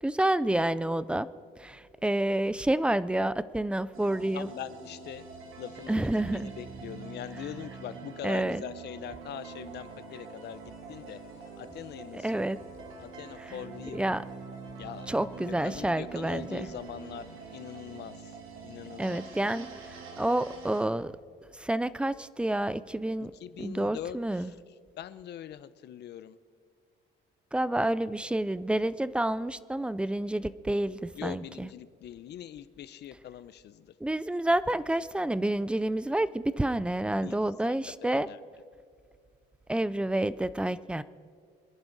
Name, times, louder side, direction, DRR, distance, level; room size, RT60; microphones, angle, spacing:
voice 1, 0.0-1.3 1.6-4.5 5.9-6.5 8.2-8.6 12.2-12.6 13.9-14.2 15.1-16.7 19.0-21.2 21.6-23.3 23.6-24.5 27.5-31.7 34.0-38.3 39.7-41.0, right 1 dB, 5° right, 16 dB, 0.3 m, -29 dB
sound 1, 3.9-20.9, right 5 dB, 85° right, 2.6 m, -45 dB
voice 2, 4.3-5.3 5.6-14.0 14.8-15.1 15.5-18.4 18.6-19.2 23.3-24.6 25.0-26.4 31.1-33.9 37.2-37.4 37.6-38.4, left 10 dB, 55° left, 14 dB, 0.7 m, -43 dB
sound 2, 9.6-17.9, left 1 dB, 15° left, 4.9 m, -56 dB
26.0 x 11.0 x 4.0 m, 2.2 s
cardioid pair, 150°, 21 cm